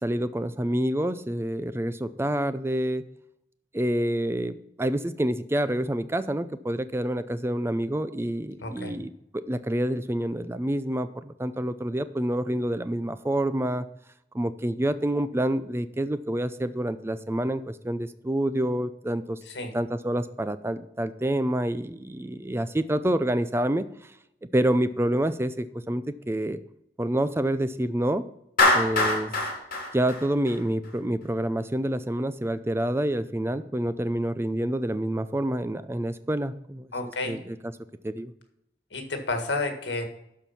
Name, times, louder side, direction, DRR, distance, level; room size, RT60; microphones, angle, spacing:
voice 1, 0.0-3.0 3.7-9.1 9.5-13.9 14.3-19.4 19.7-23.8 24.5-26.6 27.0-28.2 28.7-29.4 29.9-36.9 37.3-37.6 38.0-38.3, right 1 dB, 15° right, 12 dB, 0.5 m, -27 dB
voice 2, 8.6-9.0 19.5-19.7 36.9-37.4 38.9-40.1, left 2 dB, 85° left, 5 dB, 1.8 m, -31 dB
Clapping, 28.6-30.9, left 2 dB, 55° left, 3.8 m, -23 dB
12.0 x 4.6 x 5.7 m, 0.80 s
head